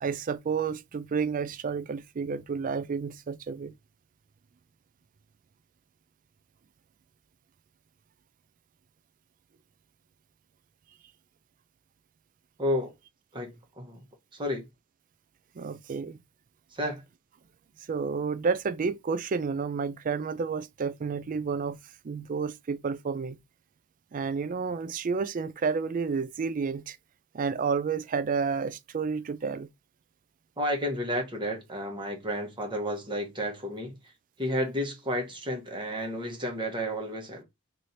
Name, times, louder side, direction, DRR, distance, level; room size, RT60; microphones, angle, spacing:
voice 1, 0.0-3.7 15.6-16.2 17.9-21.8 22.0-23.4 24.1-27.0 27.3-29.7, right 5 dB, 35° right, 0.3 m, -30 dB
voice 2, 12.6-12.9 13.3-14.0 14.3-14.7 16.7-17.0 30.6-34.0 34.4-37.4, equal, 20° right, 1.1 m, -31 dB
3.2 x 2.7 x 4.1 m
head